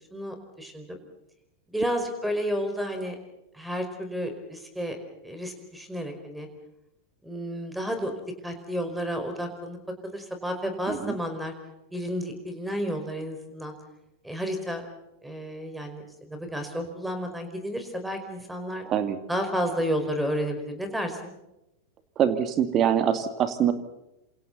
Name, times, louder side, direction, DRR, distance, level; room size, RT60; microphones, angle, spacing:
voice 1, 0.1-1.0 1.7-3.1 3.5-5.0 5.2-6.5 7.2-8.1 8.4-9.8 10.0-11.5 11.9-13.7 14.2-14.8 15.2-18.9 19.3-21.3, equal, 5° right, 7 dB, 5.0 m, -31 dB
voice 2, 18.9-19.2 22.2-23.7, right 9 dB, 30° right, 9 dB, 2.4 m, -24 dB
29.0 x 27.5 x 4.1 m, 0.87 s
figure-of-eight pair, 90°, 0 cm